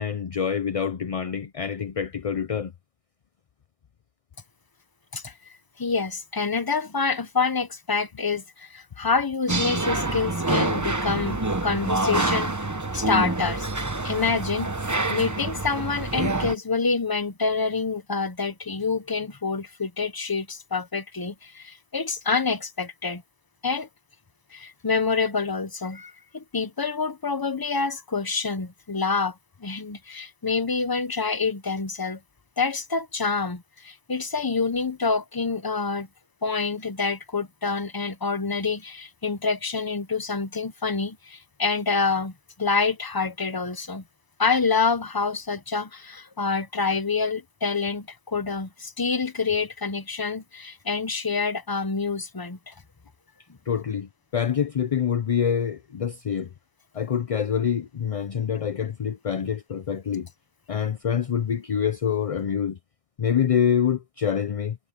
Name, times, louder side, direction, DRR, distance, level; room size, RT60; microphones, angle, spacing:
voice 1, 0.0-2.7 53.7-56.5 56.9-60.3 60.7-62.8 63.2-64.8, left 8 dB, 45° left, 0.5 m, -26 dB
voice 2, 5.8-12.5 12.9-13.7 14.0-23.2 23.6-23.9 24.5-29.3 29.6-32.2 32.6-36.1 36.4-42.3 42.6-44.0 44.4-52.7, left 4 dB, 20° left, 0.8 m, -27 dB
sound 1, 9.5-16.5, right 2 dB, 15° right, 0.9 m, -26 dB
omnidirectional pair, 1.1 m